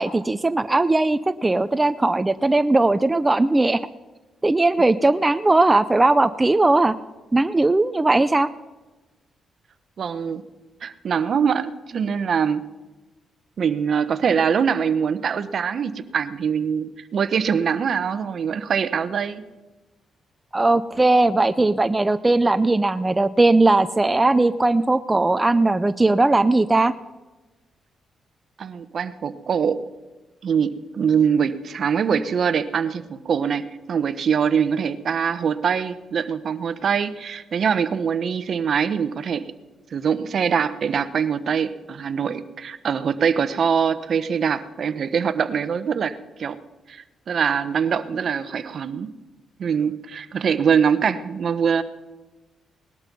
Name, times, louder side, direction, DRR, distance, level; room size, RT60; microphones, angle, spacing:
voice 1, 0.0-3.8 4.4-6.9 7.3-8.5 20.5-26.9, right 2 dB, 20° right, 12 dB, 0.5 m, -18 dB
voice 2, 10.0-10.4 10.8-12.6 13.6-19.4 28.6-29.8 30.4-39.5 39.9-46.6 46.9-49.1 49.6-51.8, right 7 dB, 55° right, 14 dB, 0.9 m, -23 dB
19.0 x 12.0 x 5.4 m, 1.2 s
cardioid pair, 95°, 0 cm